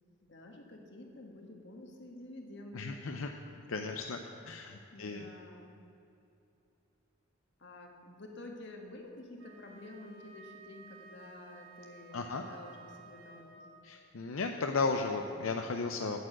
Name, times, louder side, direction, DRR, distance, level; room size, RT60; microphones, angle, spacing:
voice 1, 0.3-3.0 4.9-5.7 7.6-13.6, left 1 dB, 60° left, 2 dB, 1.5 m, -50 dB
voice 2, 2.7-3.3 3.7-4.2 4.4-5.3 12.1-12.4 13.8-16.2, left 4 dB, 85° left, 4 dB, 0.6 m, -35 dB
Wind instrument woodwind instrument, 9.3-14.0, right 4 dB, 70° right, 1.3 m, -55 dB
9.2 x 8.6 x 7.6 m, 2.7 s
head